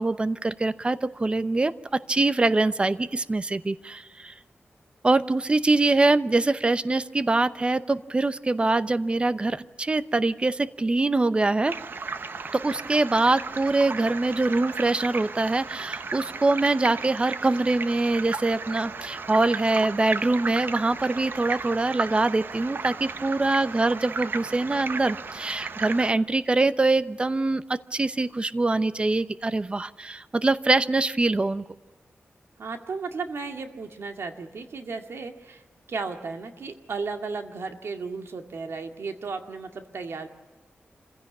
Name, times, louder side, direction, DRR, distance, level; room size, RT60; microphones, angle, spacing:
voice 1, 0.0-4.3 5.0-11.7 12.5-31.6, right 2 dB, 25° right, 14 dB, 0.8 m, -24 dB
sound 1, 11.7-26.1, right 4 dB, 55° right, 0.9 m, -35 dB
voice 2, 32.6-35.6 35.9-40.3, right 4 dB, 80° right, 5 dB, 2.1 m, -34 dB
27.0 x 16.0 x 8.5 m, 1.3 s
wide cardioid pair, 135°, 4 cm